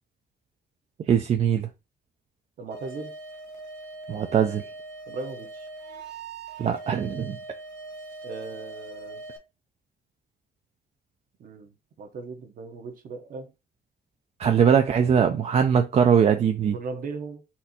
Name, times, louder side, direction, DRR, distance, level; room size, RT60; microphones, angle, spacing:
voice 1, 1.1-1.7 4.1-4.6 6.6-7.4 14.4-16.8, right 7 dB, 40° right, 0.4 m, -21 dB
voice 2, 2.6-3.1 5.1-5.7 8.2-9.2 11.4-13.5 16.7-17.4, right 3 dB, 55° right, 0.9 m, -38 dB
sound 1, 2.7-9.4, right 2 dB, 90° right, 1.0 m, -41 dB
4.3 x 2.6 x 4.1 m
cardioid pair, 155°, 17 cm